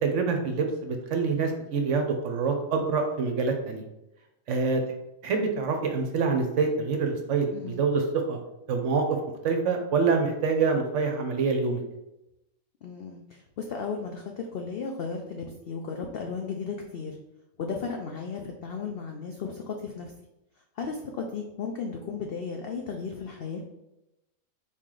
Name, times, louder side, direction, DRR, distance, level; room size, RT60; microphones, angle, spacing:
voice 1, 0.0-3.8 4.5-4.8 5.2-8.4 8.7-9.2 9.4-11.8, right 4 dB, 65° right, 4 dB, 0.9 m, -26 dB
voice 2, 7.5-7.8 12.8-17.2 17.6-20.1 20.8-23.6, left 5 dB, 75° left, 2 dB, 0.5 m, -35 dB
4.1 x 3.1 x 3.7 m, 0.90 s
omnidirectional pair, 1.5 m